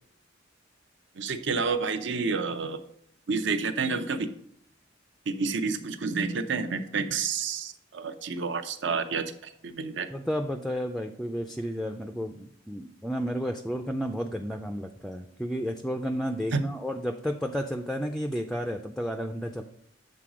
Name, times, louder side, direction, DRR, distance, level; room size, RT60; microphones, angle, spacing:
voice 1, 1.2-2.8 3.3-4.3 5.3-10.1 16.5-16.6, right 4 dB, 65° right, 9 dB, 0.6 m, -29 dB
voice 2, 10.1-19.6, equal, ahead, 5 dB, 0.3 m, -32 dB
7.5 x 3.9 x 4.9 m, 0.67 s
head